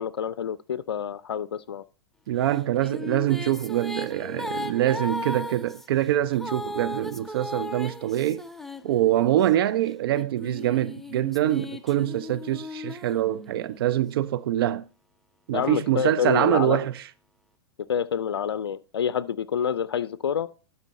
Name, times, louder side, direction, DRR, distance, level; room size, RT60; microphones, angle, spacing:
voice 1, 0.0-1.8 15.5-16.8 17.9-20.5, left 8 dB, 90° left, 0.4 m, -27 dB
voice 2, 2.3-8.5 8.8-14.9 15.5-17.0, right 12 dB, 65° right, 0.4 m, -24 dB
sound 1, 2.5-9.5 10.1-13.8, left 2 dB, ahead, 0.6 m, -37 dB
12.5 x 4.2 x 4.0 m
hypercardioid pair, 110°, 13 cm